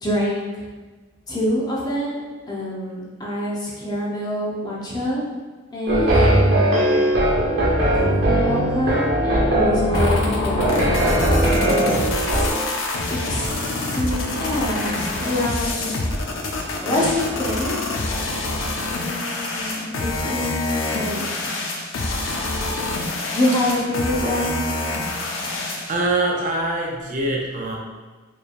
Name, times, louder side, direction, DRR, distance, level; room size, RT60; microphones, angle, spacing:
voice 1, 0.0-0.5 1.3-2.2 2.5-5.2 5.7-6.8 7.9-10.7 12.3-12.5 13.1-13.5 13.9-15.9 16.8-17.8 18.9-21.3 23.3-24.6, left 1 dB, 20° left, -5 dB, 0.8 m, -26 dB
sound 1, 5.9-12.5, right 1 dB, 65° right, 1.5 m, -19 dB
sound 2, 9.9-25.9, left 2 dB, 80° left, 0.6 m, -26 dB
voice 2, 25.9-27.8, right 2 dB, 40° right, -1 dB, 0.5 m, -24 dB
4.5 x 3.2 x 2.5 m, 1.3 s
head